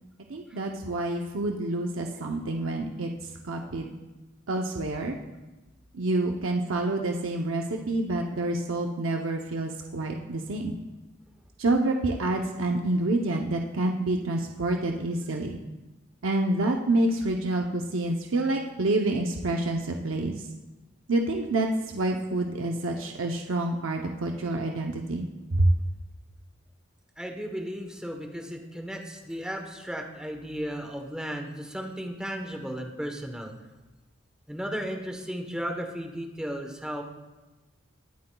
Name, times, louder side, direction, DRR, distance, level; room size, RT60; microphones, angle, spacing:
voice 1, 0.3-3.1 3.4-4.0 4.5-5.1 5.9-10.7 11.6-15.6 16.2-20.5 21.1-25.3 25.5-25.7, right 2 dB, 85° right, 2 dB, 0.7 m, -27 dB
voice 2, 27.2-33.5 34.5-37.0, equal, 5° right, 2 dB, 1.0 m, -35 dB
22.0 x 7.8 x 2.3 m, 1.1 s
head